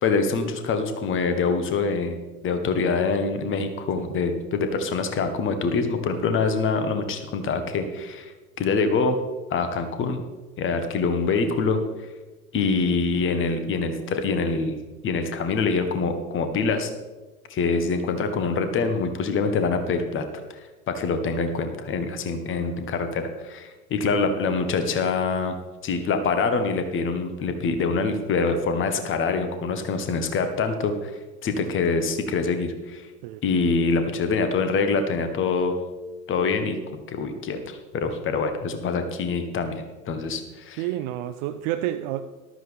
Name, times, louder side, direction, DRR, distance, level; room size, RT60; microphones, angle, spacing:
voice 1, 0.0-2.2 2.4-9.2 9.5-10.2 10.6-11.8 12.5-14.8 15.0-16.9 17.5-20.2 20.9-25.5 25.8-31.1 31.4-33.1 33.4-35.7 36.3-36.8 37.1-40.8, left 4 dB, 25° left, 8 dB, 1.4 m, -25 dB
voice 2, 40.8-42.2, right 13 dB, 30° right, 8 dB, 0.4 m, -29 dB
13.5 x 12.5 x 3.5 m, 1.2 s
figure-of-eight pair, 85°, 47 cm